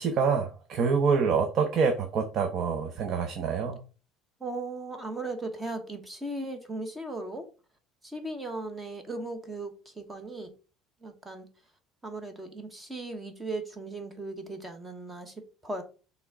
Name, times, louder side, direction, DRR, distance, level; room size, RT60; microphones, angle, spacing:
voice 1, 0.0-3.8, right 5 dB, 40° right, 0.8 m, -26 dB
voice 2, 4.4-7.5 8.0-10.5 11.0-11.5 12.0-15.8, right 2 dB, 10° right, 1.1 m, -37 dB
6.1 x 3.6 x 4.7 m
cardioid pair, 155°, 0 cm